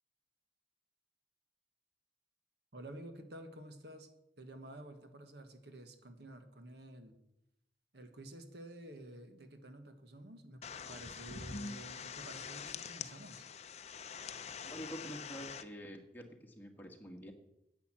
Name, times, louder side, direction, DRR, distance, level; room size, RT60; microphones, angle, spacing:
voice 1, 2.7-4.1 4.4-7.2 7.9-13.4, right 1 dB, 70° right, 7 dB, 1.5 m, -51 dB
sound 1, 10.6-15.6, left 6 dB, 40° left, 0.6 m, -45 dB
voice 2, 14.6-17.3, equal, 10° left, 2 dB, 1.6 m, -47 dB
10.5 x 8.3 x 7.6 m, 0.83 s
head